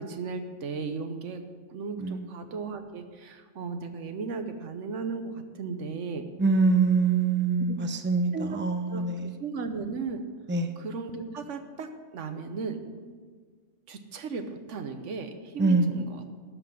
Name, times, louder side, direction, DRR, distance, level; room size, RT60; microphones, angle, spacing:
voice 1, 0.0-1.4 1.7-6.2 7.7-7.8 8.3-8.6 8.9-9.0 9.4-10.2 10.8-13.1 13.9-16.2, right 4 dB, 85° right, 8 dB, 1.2 m, -36 dB
voice 2, 6.4-9.4 10.5-10.7 15.6-15.9, right 4 dB, 15° right, 7 dB, 0.5 m, -24 dB
12.5 x 5.8 x 7.2 m, 1.6 s
omnidirectional pair, 1.2 m